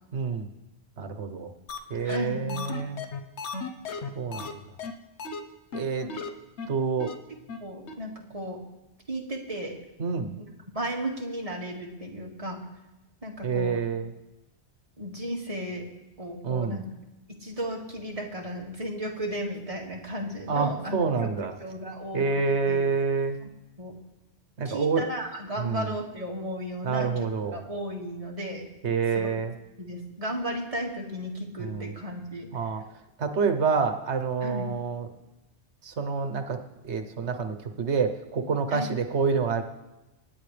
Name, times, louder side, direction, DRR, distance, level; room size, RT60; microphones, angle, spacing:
voice 1, 0.1-0.5 1.0-1.5 1.9-3.0 4.1-4.6 5.7-6.1 6.7-7.1 10.0-10.3 13.4-14.1 16.4-16.8 20.5-21.5 22.1-23.4 24.6-25.0 25.6-25.9 26.8-27.6 28.8-29.5 31.6-31.9 32.5-32.8 33.2-35.1 35.8-36.6 36.8-39.6, right 5 dB, 80° right, 7 dB, 1.3 m, -27 dB
sound 1, 1.7-1.8 2.1-2.2 2.5-4.5 4.8-4.9 5.2-5.4 5.7-5.8 6.1-6.3 6.6-6.7 7.0-7.1 7.5-7.6 7.9-8.0, left 5 dB, 80° left, 1.2 m, -35 dB
voice 2, 2.0-2.6 6.0-6.2 7.6-8.6 9.1-9.7 10.7-12.6 13.2-13.8 15.0-15.8 16.2-16.9 17.4-22.8 23.4-23.5 23.8-23.9 24.7-28.6 29.1-29.4 29.8-32.5 34.4-34.7 38.7-38.9, equal, 30° right, -1 dB, 2.1 m, -34 dB
25.5 x 9.9 x 3.4 m, 1.0 s
omnidirectional pair, 1.1 m